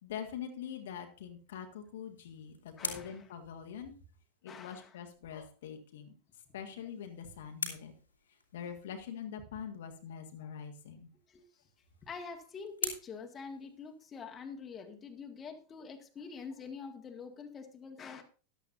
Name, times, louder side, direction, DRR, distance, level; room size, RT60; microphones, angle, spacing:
voice 1, 0.0-3.9 4.4-6.1 6.5-7.9 8.5-11.1, left 8 dB, 60° left, 5 dB, 1.6 m, -44 dB
sound 1, 1.9-4.4 6.5-8.9 11.2-14.3, left 4 dB, 80° left, 2.2 m, -45 dB
voice 2, 2.8-3.3 4.5-5.0 10.4-10.5 11.3-11.4 12.0-18.2, left 5 dB, 20° left, 4 dB, 1.7 m, -46 dB
14.0 x 11.0 x 2.6 m, 0.37 s
figure-of-eight pair, 90°, 0 cm